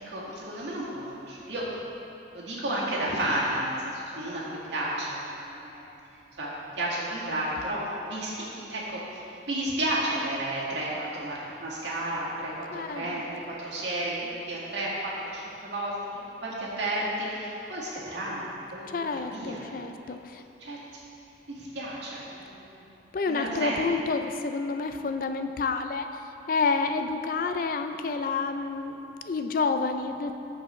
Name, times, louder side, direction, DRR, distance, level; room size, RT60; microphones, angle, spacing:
voice 1, 0.1-1.7 2.3-5.8 6.4-16.0 16.4-19.7 20.6-20.8 21.5-22.8 23.3-23.8, right 1 dB, 80° right, -7 dB, 1.9 m, -32 dB
voice 2, 12.7-13.2 18.9-20.4 23.1-26.1 26.5-30.3, left 4 dB, 50° left, 7 dB, 0.4 m, -29 dB
14.0 x 4.7 x 3.2 m, 2.9 s
head